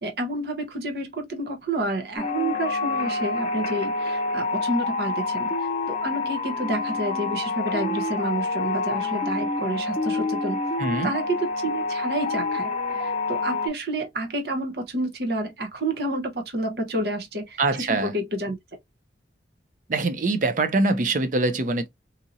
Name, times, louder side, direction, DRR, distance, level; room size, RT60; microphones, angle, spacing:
voice 1, 0.0-10.6 11.0-18.6, right 1 dB, 60° right, 0.9 m, -29 dB
sound 1, 2.2-13.7, left 3 dB, 35° left, 0.5 m, -27 dB
voice 2, 10.8-11.1 17.6-18.2 19.9-21.9, right 2 dB, 45° right, 0.5 m, -23 dB
2.8 x 2.6 x 2.6 m
head